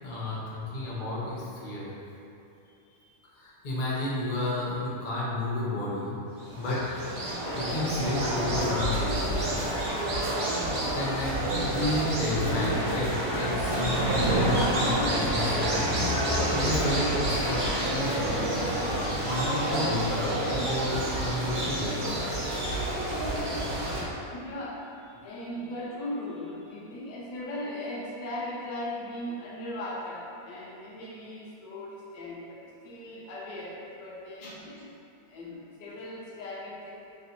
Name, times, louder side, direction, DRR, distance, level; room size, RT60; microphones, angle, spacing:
voice 1, 0.0-1.9 3.4-6.2 6.6-6.9 7.5-9.3 10.9-15.9 16.5-18.5 19.2-22.2 34.4-34.5, left 1 dB, 50° left, -7 dB, 0.5 m, -31 dB
voice 2, 2.8-3.2 24.2-35.0 35.3-37.0, left 1 dB, 85° left, -4 dB, 1.3 m, -38 dB
sound 1, 6.4-24.0, right 1 dB, 55° right, 0.5 m, -29 dB
sound 2, 13.1-15.8, right 2 dB, 75° right, 1.2 m, -31 dB
3.4 x 2.6 x 4.1 m, 2.8 s
omnidirectional pair, 1.9 m